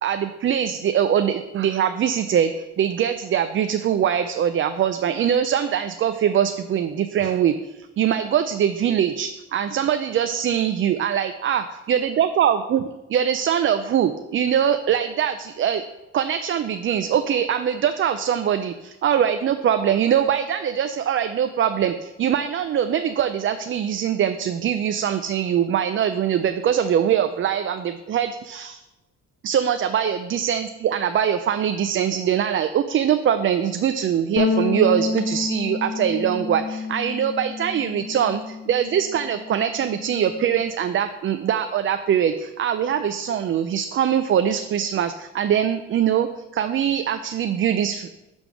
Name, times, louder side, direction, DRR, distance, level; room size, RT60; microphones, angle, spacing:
voice 1, 0.0-12.8 13.1-15.8 16.1-28.8 29.4-48.1, right 9 dB, 45° right, 9 dB, 0.4 m, -22 dB
sound 1, 34.4-38.9 39.2-40.6, left 3 dB, 45° left, 0.7 m, -28 dB
6.8 x 3.5 x 6.1 m, 1.0 s
cardioid pair, 90°, 30 cm